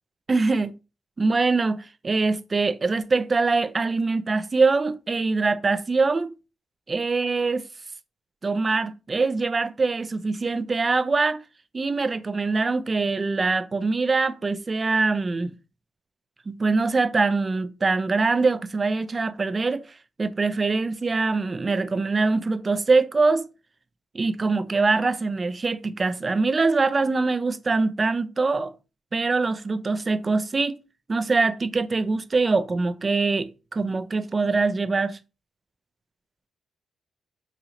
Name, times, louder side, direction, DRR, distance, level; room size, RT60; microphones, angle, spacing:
voice 1, 0.3-0.7 1.2-6.3 6.9-7.6 8.4-11.4 11.7-15.5 16.5-19.9 20.2-23.5 24.1-28.7 29.1-30.8 31.1-35.2, right 3 dB, 30° right, 0.4 m, -23 dB
4.2 x 2.7 x 2.9 m
cardioid pair, 110°, 0 cm